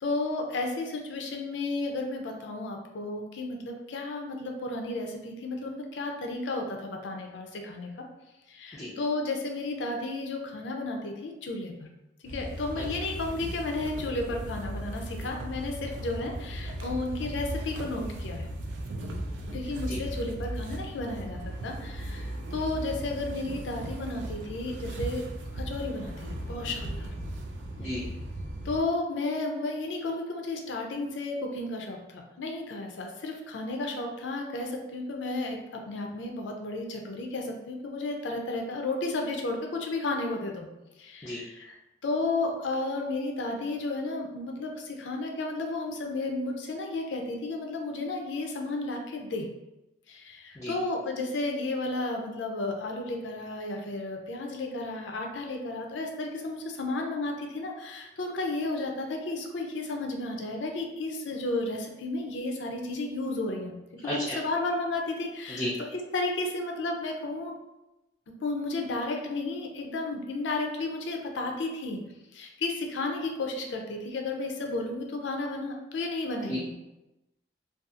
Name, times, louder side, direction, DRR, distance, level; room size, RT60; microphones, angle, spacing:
voice 1, 0.0-8.0 8.5-11.9 12.2-18.5 19.5-25.2 25.5-27.1 28.6-40.7 41.0-41.8 42.0-49.5 50.1-63.8 64.0-67.5 68.4-72.0 72.3-76.7, left 2 dB, 90° left, 2 dB, 0.4 m, -33 dB
sound 1, 12.2-28.8, right 1 dB, 85° right, 0.4 m, -37 dB
voice 2, 64.0-64.4 65.6-65.7 76.5-76.6, equal, 15° left, -7 dB, 0.4 m, -33 dB
2.6 x 2.3 x 2.4 m, 0.97 s
head